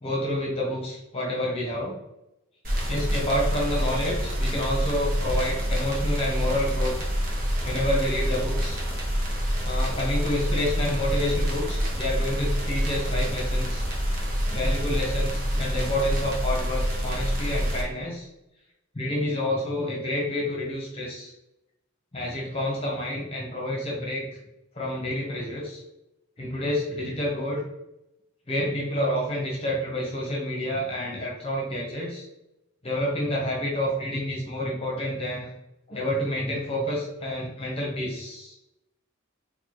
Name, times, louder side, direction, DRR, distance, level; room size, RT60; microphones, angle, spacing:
voice 1, 0.0-2.0 2.9-6.9 7.6-8.8 9.6-13.8 14.5-18.3 18.9-21.3 22.1-24.3 24.7-25.8 26.4-27.7 28.5-32.2 32.8-35.5 35.9-38.6, left 1 dB, 30° left, -2 dB, 0.8 m, -29 dB
sound 1, 2.6-17.8, equal, 45° right, 0.8 m, -27 dB
4.1 x 2.2 x 3.0 m, 0.89 s
head